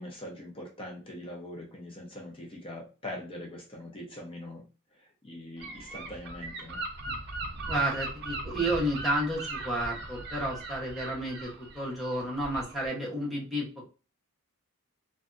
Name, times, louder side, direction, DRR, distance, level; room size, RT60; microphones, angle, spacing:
voice 1, 0.0-4.6 5.0-6.8, left 1 dB, 25° left, -1 dB, 0.6 m, -42 dB
Gull seagull / Wind, 5.6-12.9, right 2 dB, 50° right, 0.5 m, -39 dB
voice 2, 7.7-13.9, right 1 dB, ahead, -5 dB, 0.9 m, -31 dB
2.6 x 2.2 x 2.4 m, 0.34 s
head